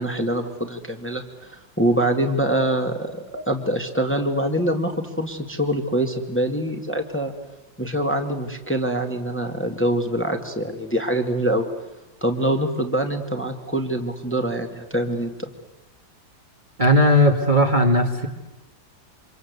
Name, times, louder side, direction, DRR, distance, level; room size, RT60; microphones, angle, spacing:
voice 1, 0.0-7.3 7.8-11.7 12.2-15.5, right 1 dB, 5° left, 4 dB, 2.0 m, -24 dB
voice 2, 16.8-18.3, equal, 25° right, 3 dB, 1.8 m, -17 dB
28.5 x 26.0 x 8.2 m, 1.0 s
omnidirectional pair, 2.0 m